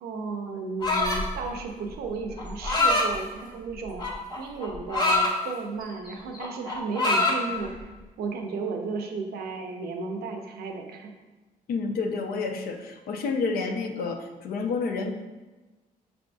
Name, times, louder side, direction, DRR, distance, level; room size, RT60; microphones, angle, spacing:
voice 1, 0.0-4.0 4.4-11.1, right 4 dB, 80° right, 3 dB, 0.5 m, -34 dB
sound 1, 0.8-1.3 2.4-3.1 4.0-5.3 5.8-6.1 6.3-7.4, left 2 dB, 25° left, 0.9 m, -24 dB
voice 2, 11.7-15.1, left 4 dB, 75° left, 5 dB, 0.5 m, -29 dB
5.7 x 2.5 x 2.3 m, 1.2 s
cardioid pair, 75°, 16 cm